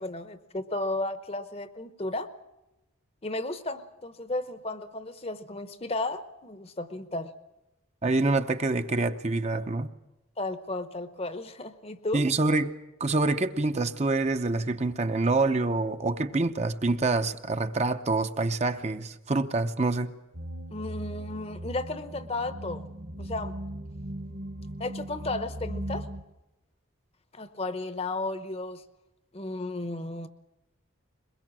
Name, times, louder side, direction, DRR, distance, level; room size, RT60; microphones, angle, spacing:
voice 1, 0.0-2.3 3.2-7.3 10.4-12.2 20.7-22.8 23.2-23.6 24.8-26.1 27.3-28.8 29.3-30.3, left 2 dB, 30° left, 0.9 m, -34 dB
voice 2, 8.0-9.9 12.1-12.7 13.0-20.1, right 3 dB, 30° right, 0.7 m, -26 dB
sound 1, 20.3-26.2, right 1 dB, 50° right, 1.2 m, -38 dB
22.5 x 21.5 x 7.5 m
head